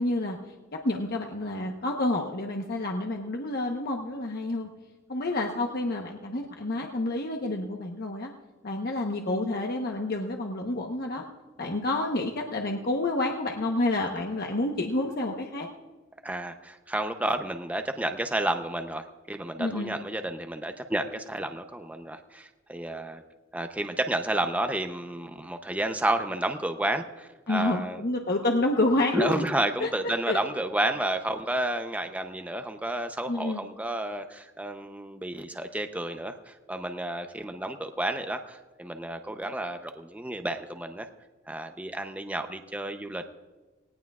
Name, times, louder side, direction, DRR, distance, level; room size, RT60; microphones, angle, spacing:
voice 1, 0.0-4.7 5.1-8.3 8.6-11.3 11.6-15.7 19.6-19.9 27.5-29.4 29.8-30.4 33.3-33.6, left 2 dB, 50° left, 1 dB, 1.0 m, -29 dB
voice 2, 16.2-23.2 23.5-28.0 29.1-41.1 41.5-43.3, right 1 dB, 10° right, 6 dB, 0.7 m, -31 dB
18.5 x 18.5 x 2.4 m, 1.2 s
head